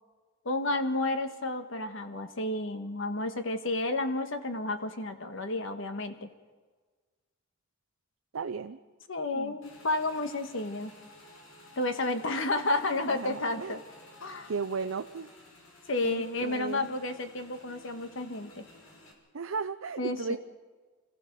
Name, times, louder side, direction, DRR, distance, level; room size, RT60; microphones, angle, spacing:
voice 1, 0.4-6.3 9.1-10.9 11.8-13.8 14.2-14.5 15.9-18.6 20.0-20.4, left 2 dB, 70° left, 8 dB, 1.4 m, -31 dB
voice 2, 8.3-8.8 9.3-9.6 13.0-13.8 14.5-15.3 16.0-16.9 19.3-20.4, right 5 dB, 85° right, 7 dB, 0.6 m, -35 dB
Motorcycle / Engine, 9.6-19.1, left 1 dB, 85° left, 4.4 m, -54 dB
26.5 x 15.5 x 6.8 m, 1.4 s
head